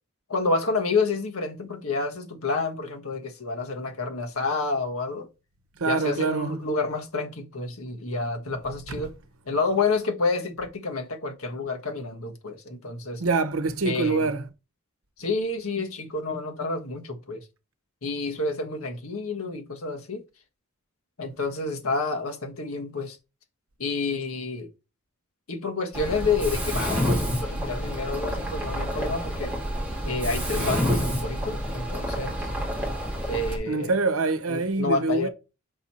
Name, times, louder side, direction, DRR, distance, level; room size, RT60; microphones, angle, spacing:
voice 1, 0.3-5.3 5.8-9.1 9.5-13.2 13.8-14.3 15.2-17.5 18.0-20.2 21.2-23.2 23.8-24.7 25.5-29.5 30.0-32.5 33.3-33.9 34.5-35.3, left 3 dB, 80° left, 1.4 m, -29 dB
voice 2, 5.8-6.6 13.2-14.5 33.7-35.3, right 3 dB, 75° right, 0.9 m, -25 dB
Mechanisms, 25.9-33.6, equal, 5° right, 2.2 m, -28 dB
5.5 x 4.3 x 4.2 m
head